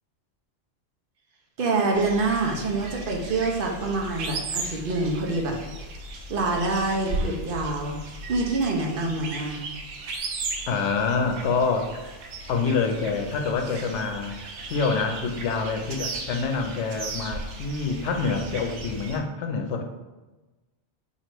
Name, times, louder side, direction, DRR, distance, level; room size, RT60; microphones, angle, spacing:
voice 1, 1.6-5.6 6.3-8.0 8.3-9.6, right 3 dB, 55° right, 0 dB, 0.7 m, -26 dB
sound 1, 1.9-19.2, right 2 dB, 90° right, 0.9 m, -36 dB
voice 2, 10.7-12.0 12.5-14.4 14.7-19.8, left 4 dB, 85° left, 5 dB, 0.9 m, -26 dB
3.0 x 2.8 x 4.4 m, 1.1 s
omnidirectional pair, 1.2 m